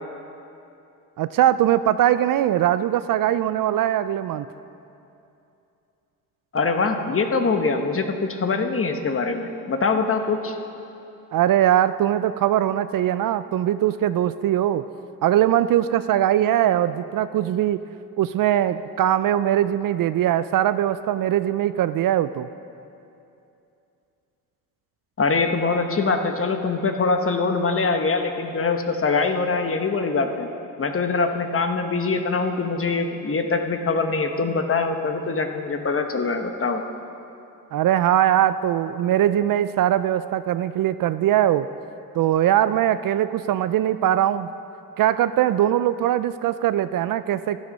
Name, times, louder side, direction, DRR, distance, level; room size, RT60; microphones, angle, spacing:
voice 1, 1.2-4.5 11.3-14.8 15.2-17.8 18.2-22.5 37.7-41.7 42.2-44.5 45.0-47.6, right 11 dB, 60° right, 13 dB, 0.5 m, -21 dB
voice 2, 6.5-10.6 25.2-30.5 30.8-36.8, left 4 dB, 35° left, 6 dB, 1.2 m, -23 dB
13.0 x 11.0 x 5.4 m, 2.7 s
cardioid pair, 80°, 38 cm